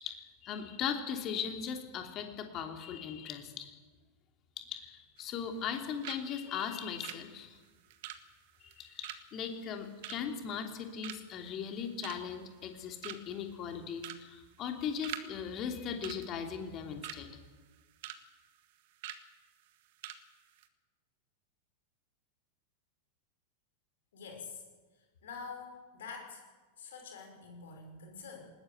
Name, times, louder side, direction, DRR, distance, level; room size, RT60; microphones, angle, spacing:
voice 1, 0.0-3.7 4.7-7.6 8.6-17.3, left 7 dB, 35° left, 4 dB, 3.0 m, -38 dB
sound 1, 5.2-5.8 6.0-6.3 6.5-10.7 11.0-11.4 11.8-12.4 12.7-12.8 13.0-13.4 14.0-14.3 14.5-15.3 15.5-15.7 16.0-17.2 17.6-18.2 18.5-18.6 19.0-19.2 19.7-19.8 20.0-20.2 20.5-20.7, right 12 dB, 50° right, 1.7 m, -44 dB
voice 2, 24.1-24.6 25.2-26.4 26.8-28.5, left 5 dB, 60° left, 3 dB, 5.7 m, -46 dB
20.0 x 19.5 x 8.1 m, 1.3 s
figure-of-eight pair, 90°, 0 cm